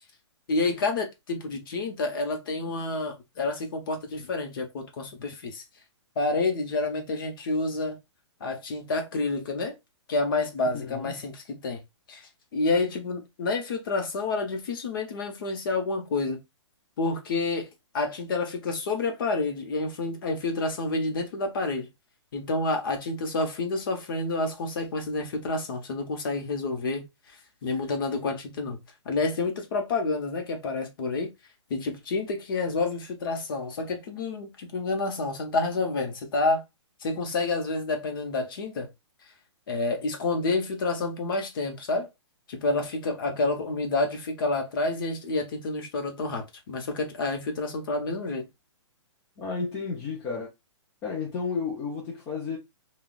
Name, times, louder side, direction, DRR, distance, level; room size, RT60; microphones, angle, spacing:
voice 1, 0.5-5.6 6.2-8.0 8.4-9.7 10.1-11.8 12.1-16.4 17.0-21.9 22.3-27.1 27.6-28.8 29.0-31.3 31.7-36.6 37.0-38.9 39.7-42.1 42.5-48.5, left 3 dB, 45° left, 0.9 m, -29 dB
voice 2, 10.7-11.1 43.3-43.4 49.4-50.5 51.0-52.6, left 5 dB, 15° left, 0.5 m, -32 dB
3.7 x 2.3 x 2.3 m
hypercardioid pair, 165°, 16 cm